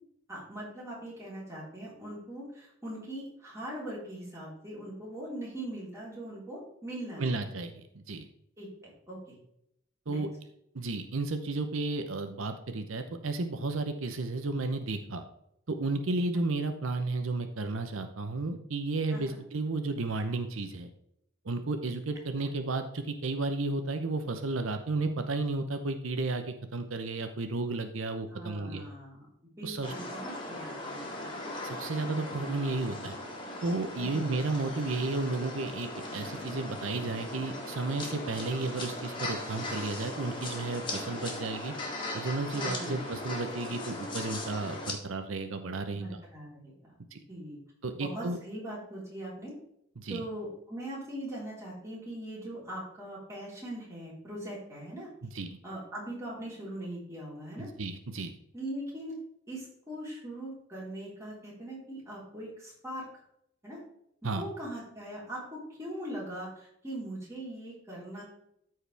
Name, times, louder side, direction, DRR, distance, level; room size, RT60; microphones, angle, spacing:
voice 1, 0.3-7.4 8.6-9.3 10.1-10.2 19.1-19.4 22.4-22.5 28.3-29.3 29.6-31.3 31.9-32.1 34.0-34.3 42.5-43.1 45.9-46.9 47.3-47.6 47.9-49.5 50.1-55.1 55.6-57.7 58.5-59.1 59.5-63.0 63.6-63.8 64.2-68.2, right 1 dB, 15° right, -6 dB, 3.9 m, -41 dB
voice 2, 7.2-8.3 10.1-10.3 10.7-15.2 15.7-20.9 21.4-28.9 29.6-29.9 31.6-33.2 33.6-41.7 42.1-46.2 47.1-47.2 47.8-48.4 50.0-50.2 55.2-55.6 57.6-58.3 64.2-64.4, right 3 dB, 85° right, 7 dB, 0.8 m, -33 dB
sound 1, 29.8-44.9, left 1 dB, 25° left, 1.9 m, -38 dB
13.5 x 4.8 x 3.4 m, 0.75 s
head